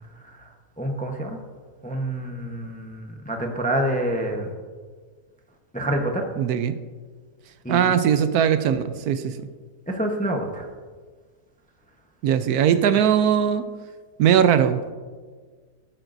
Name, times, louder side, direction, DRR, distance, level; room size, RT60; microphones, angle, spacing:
voice 1, 0.8-1.4 1.8-4.5 5.7-6.2 7.6-7.8 9.9-10.7, right 1 dB, 5° left, 2 dB, 0.7 m, -27 dB
voice 2, 6.4-6.7 7.7-9.3 12.2-13.6 14.2-14.8, right 9 dB, 75° right, 11 dB, 1.1 m, -20 dB
15.5 x 8.9 x 2.6 m, 1.5 s
omnidirectional pair, 1.6 m